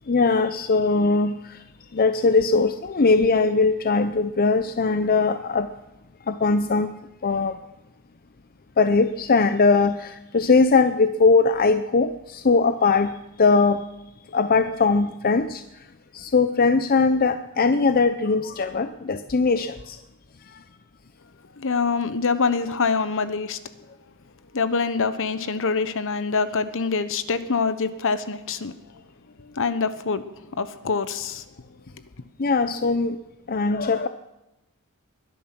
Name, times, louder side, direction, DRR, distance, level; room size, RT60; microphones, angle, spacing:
voice 1, 0.1-1.6 1.9-5.7 6.3-7.6 8.8-13.1 13.4-13.8 14.3-15.6 16.1-20.0 32.4-33.2 33.5-34.1, left 4 dB, 45° left, 10 dB, 0.6 m, -20 dB
voice 2, 21.6-23.6 24.5-28.8 29.4-31.4, left 4 dB, 65° left, 13 dB, 1.1 m, -25 dB
21.5 x 10.5 x 6.1 m, 0.93 s
head